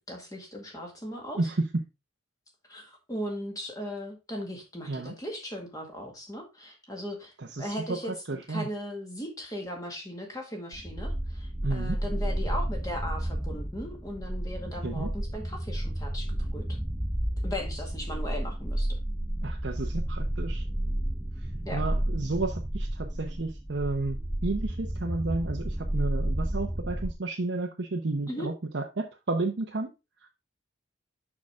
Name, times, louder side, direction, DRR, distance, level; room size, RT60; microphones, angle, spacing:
voice 1, 0.1-1.5 2.7-16.6 17.4-19.0 21.7-21.8 28.3-28.5, equal, 15° left, 1 dB, 1.9 m, -38 dB
voice 2, 7.5-8.0 8.3-8.7 11.6-12.0 14.8-15.1 19.4-20.6 21.7-29.9 30.2-30.3, right 2 dB, 60° right, 1 dB, 0.8 m, -32 dB
sound 1, 10.7-27.1, right 1 dB, 10° right, 0.5 m, -31 dB
6.5 x 5.9 x 3.6 m, 0.26 s
head